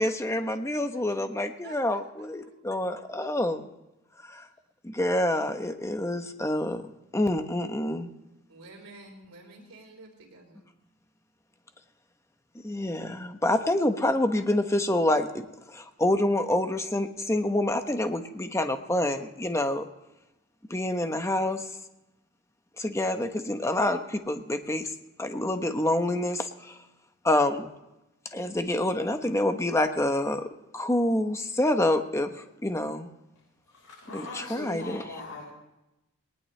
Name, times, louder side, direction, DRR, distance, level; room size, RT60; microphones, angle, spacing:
voice 1, 0.0-3.7 4.2-4.5 4.8-6.8 7.1-8.1 12.6-19.9 20.7-21.6 22.8-24.9 25.2-26.8 27.2-27.7 28.3-30.5 30.7-32.3 32.6-33.1 34.1-35.0, left 1 dB, 15° left, 7 dB, 1.0 m, -27 dB
voice 2, 1.6-2.5 8.5-10.6, right 2 dB, 75° right, -2 dB, 4.4 m, -50 dB
voice 3, 33.7-35.4, left 3 dB, 85° left, -5 dB, 4.6 m, -40 dB
20.0 x 19.0 x 3.3 m, 0.92 s
head